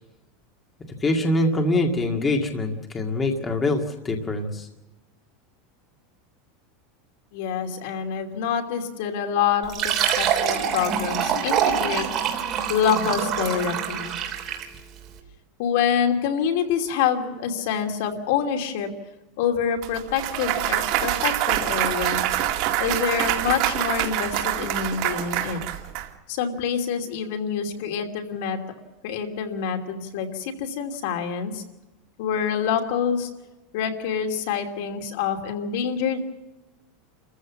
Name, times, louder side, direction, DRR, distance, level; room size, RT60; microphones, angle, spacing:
voice 1, 1.0-4.7, left 2 dB, 15° left, 3 dB, 2.1 m, -24 dB
voice 2, 7.3-12.0 12.7-14.1 15.6-18.9 19.4-22.2 22.8-25.6 26.3-28.6 29.0-31.6 32.2-33.3 33.7-36.2, left 7 dB, 65° left, 4 dB, 2.8 m, -26 dB
Fill (with liquid), 9.6-14.8, right 8 dB, 30° right, 3.2 m, -25 dB
Clapping / Cheering / Applause, 19.8-26.1, right 13 dB, 45° right, 2.2 m, -25 dB
29.0 x 15.0 x 7.2 m, 1.1 s
supercardioid pair, 160°, 0 cm